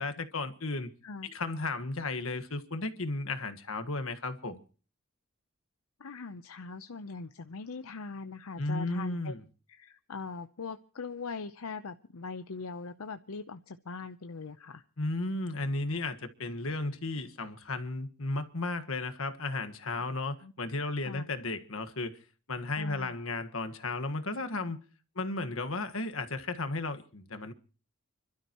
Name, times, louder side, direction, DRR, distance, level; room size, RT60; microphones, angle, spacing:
voice 1, 0.0-0.9 1.2-4.6 8.6-9.4 15.0-22.2 22.5-24.8 25.1-27.5, left 2 dB, 70° left, 1.5 m, -34 dB
voice 2, 6.0-9.3 9.7-14.8 20.4-20.5 21.0-21.3 22.7-23.1, left 4 dB, 85° left, 0.7 m, -41 dB
30.0 x 12.5 x 3.0 m
head